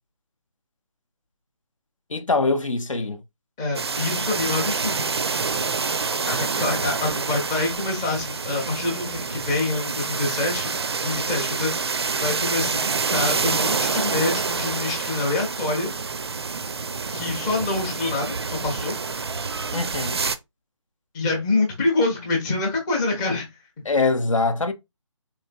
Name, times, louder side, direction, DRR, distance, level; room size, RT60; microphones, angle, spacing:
voice 1, 2.1-3.2 19.7-20.2 23.8-24.7, left 3 dB, 75° left, 0.7 m, -23 dB
voice 2, 3.6-5.0 5.4-6.0 6.3-10.7 11.0-12.8 13.1-15.9 17.1-19.0 21.1-23.5, left 2 dB, 10° left, 0.6 m, -26 dB
sound 1, 3.7-20.4, right 5 dB, 50° right, 0.4 m, -27 dB
3.9 x 3.1 x 2.2 m
figure-of-eight pair, 150°, 17 cm